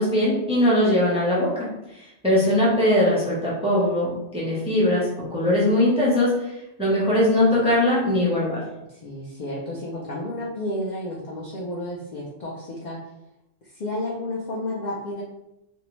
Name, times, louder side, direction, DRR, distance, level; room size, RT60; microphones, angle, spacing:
voice 1, 0.0-1.7 2.0-6.5 6.8-8.6, left 1 dB, 10° right, -6 dB, 0.4 m, -21 dB
voice 2, 8.9-13.0 13.7-15.2, left 1 dB, 65° left, -4 dB, 0.4 m, -31 dB
2.6 x 2.0 x 3.0 m, 0.89 s
omnidirectional pair, 1.3 m